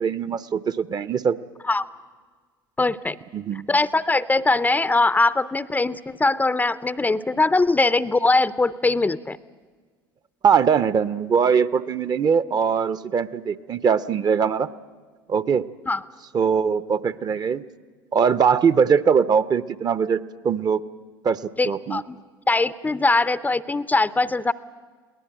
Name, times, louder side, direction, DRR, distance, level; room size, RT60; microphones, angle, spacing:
voice 1, 0.0-1.4 3.3-3.7 10.4-14.7 15.3-15.6 16.3-17.6 18.1-20.8 21.2-21.4 21.7-22.0, right 6 dB, 30° right, 15 dB, 0.8 m, -21 dB
voice 2, 2.8-3.2 3.7-9.4 15.9-16.0 21.6-22.2 22.5-24.5, left 3 dB, 15° left, 16 dB, 0.6 m, -21 dB
22.0 x 18.0 x 8.9 m, 1.5 s
hypercardioid pair, 75°, 12 cm